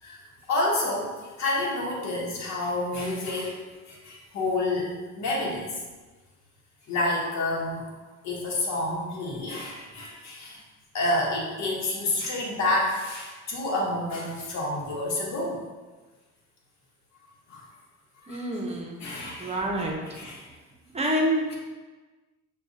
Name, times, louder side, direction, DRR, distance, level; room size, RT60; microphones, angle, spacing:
voice 1, 0.0-5.8 6.9-7.9 8.2-10.6 10.9-15.6 17.5-17.7 18.2-18.4 19.0-19.6 20.1-20.4, left 2 dB, 65° left, -3 dB, 1.1 m, -29 dB
voice 2, 18.3-20.0 20.9-21.5, right 1 dB, 20° right, -1 dB, 0.8 m, -28 dB
5.9 x 2.4 x 2.6 m, 1.3 s
cardioid pair, 90°, 30 cm